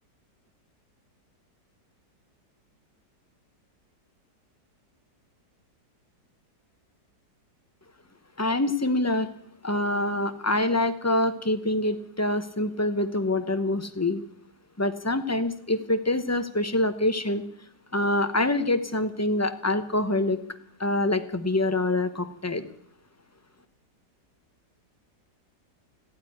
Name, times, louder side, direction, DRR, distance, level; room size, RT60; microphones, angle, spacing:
voice 1, 8.4-9.3 9.6-14.2 14.8-17.4 17.9-20.4 20.8-22.6, left 1 dB, 15° left, 9 dB, 0.5 m, -25 dB
15.5 x 9.1 x 10.0 m, 0.70 s
omnidirectional pair, 1.9 m